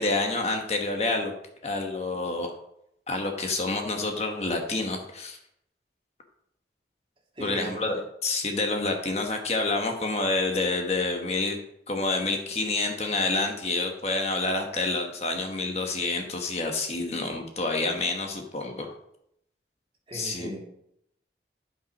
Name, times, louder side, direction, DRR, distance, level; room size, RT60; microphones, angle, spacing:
voice 1, 0.0-1.3 1.6-2.5 3.1-5.4 7.4-11.6 11.9-18.9 20.1-20.5, left 3 dB, 35° left, 3 dB, 1.2 m, -28 dB
voice 2, 7.3-7.8 20.1-20.6, right 1 dB, 30° right, -1 dB, 2.0 m, -37 dB
11.0 x 5.6 x 5.3 m, 0.77 s
head